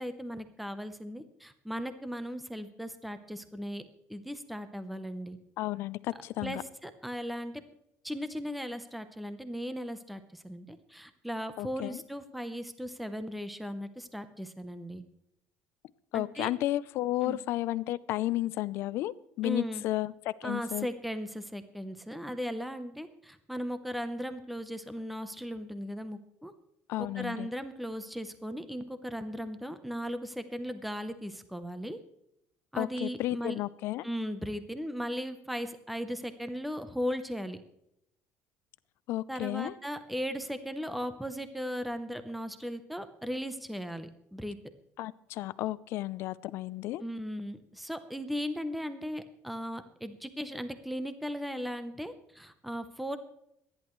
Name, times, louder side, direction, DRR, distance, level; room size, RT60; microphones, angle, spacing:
voice 1, 0.0-3.8 4.1-5.4 6.4-7.6 8.0-15.0 16.1-16.5 17.2-17.4 19.4-19.8 20.4-26.5 27.0-32.0 32.7-33.6 34.0-37.6 39.3-44.6 47.0-53.2, equal, ahead, 10 dB, 0.7 m, -37 dB
voice 2, 5.6-6.6 11.6-12.0 16.1-20.9 26.9-27.5 32.8-34.1 39.1-39.7 45.0-47.0, left 16 dB, 60° left, 18 dB, 0.5 m, -33 dB
25.5 x 10.5 x 3.1 m, 0.78 s
cardioid pair, 160°, 5 cm